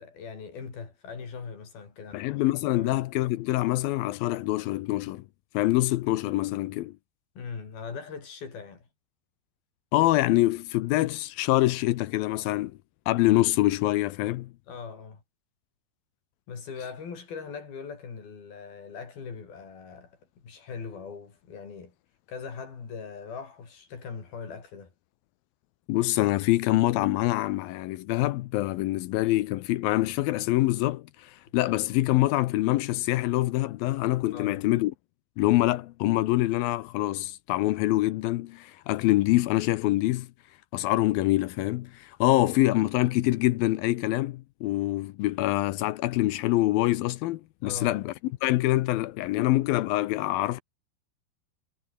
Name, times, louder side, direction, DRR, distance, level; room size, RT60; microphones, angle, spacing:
voice 1, 0.0-2.3 2.7-3.0 7.4-8.9 14.7-15.2 16.5-21.9 22.3-24.9 34.3-34.6 47.6-48.0, left 5 dB, 60° left, 7.2 m, -40 dB
voice 2, 2.1-5.3 5.5-7.0 9.9-12.7 13.1-14.5 25.9-34.9 35.4-40.3 40.7-50.6, left 17 dB, 80° left, 2.2 m, -25 dB
omnidirectional pair, 4.9 m